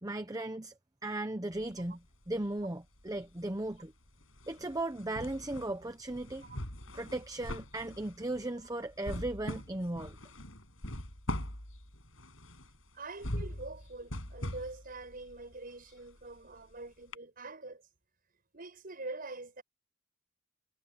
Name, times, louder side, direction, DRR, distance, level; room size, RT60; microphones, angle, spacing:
voice 1, 0.0-0.7 1.0-2.0 2.3-3.9 4.5-6.4 6.9-10.2, right 1 dB, 15° right, 0.9 m, -36 dB
sound 1, 1.5-2.7 3.0-16.7 17.1-17.2, left 1 dB, 75° left, 7.9 m, -42 dB
voice 2, 12.9-17.8 18.5-19.6, right 2 dB, 45° right, 6.2 m, -44 dB
head